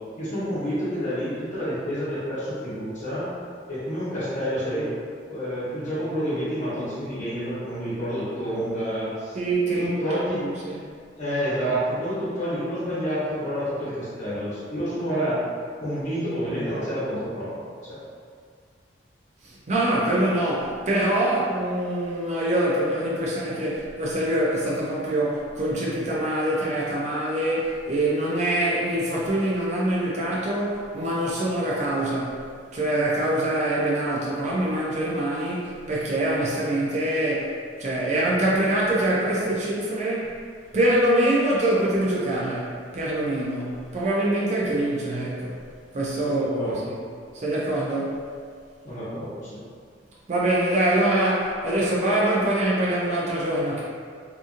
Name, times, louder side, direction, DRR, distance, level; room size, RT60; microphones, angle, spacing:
voice 1, 0.2-3.3 3.7-4.9 5.3-9.4 9.7-10.4 11.2-15.4 15.8-18.0 46.2-46.9 48.8-49.6, equal, 45° left, -11 dB, 1.1 m, -29 dB
voice 2, 9.3-10.8 19.4-32.4 32.7-37.5 37.8-40.3 40.7-45.6 45.9-47.0 47.3-48.2 50.3-53.8, right 1 dB, 40° right, -6 dB, 0.5 m, -24 dB
2.8 x 2.5 x 2.5 m, 2.1 s
head